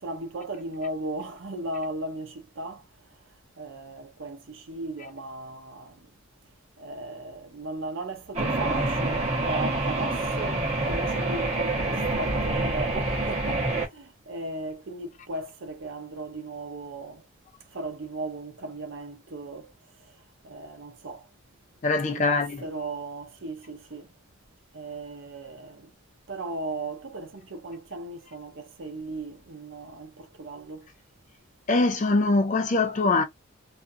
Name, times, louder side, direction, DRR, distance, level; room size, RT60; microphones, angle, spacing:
voice 1, 0.0-2.8 3.6-6.0 6.8-17.2 17.7-19.7 20.4-21.3 22.1-24.1 24.7-25.9 26.3-30.9, right 2 dB, 60° right, 0.7 m, -36 dB
sound 1, 8.3-13.9, right 2 dB, 30° right, 0.8 m, -27 dB
voice 2, 21.8-22.6 31.7-33.2, left 3 dB, 35° left, 0.4 m, -23 dB
2.5 x 2.3 x 2.6 m
head